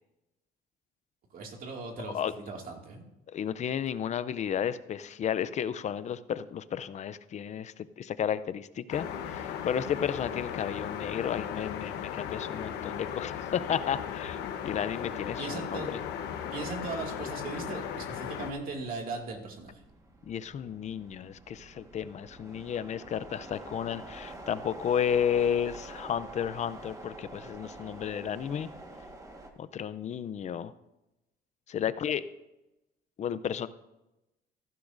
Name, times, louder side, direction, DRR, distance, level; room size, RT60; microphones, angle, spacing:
voice 1, 1.3-3.0 15.4-15.9 16.5-19.8, right 3 dB, 60° right, 1 dB, 2.2 m, -38 dB
voice 2, 2.0-2.3 3.3-16.0 20.3-28.7 29.6-30.7 31.7-32.3 33.2-33.7, left 8 dB, 45° left, 15 dB, 0.6 m, -32 dB
sound 1, 8.9-18.5, left 8 dB, 90° left, 1.1 m, -37 dB
sound 2, 16.1-29.5, right 2 dB, 20° right, 1.5 m, -47 dB
15.0 x 11.5 x 2.6 m, 0.95 s
cardioid pair, 110°, 17 cm